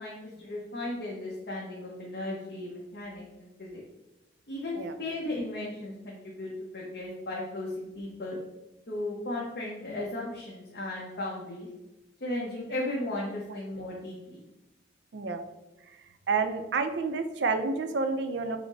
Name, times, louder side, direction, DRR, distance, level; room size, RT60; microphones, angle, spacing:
voice 1, 0.0-3.8 4.5-8.4 8.9-11.7 12.2-14.4, left 1 dB, 55° left, -4 dB, 0.7 m, -36 dB
voice 2, 16.3-18.6, right 4 dB, 65° right, 8 dB, 0.4 m, -29 dB
5.7 x 2.0 x 3.9 m, 1.0 s
head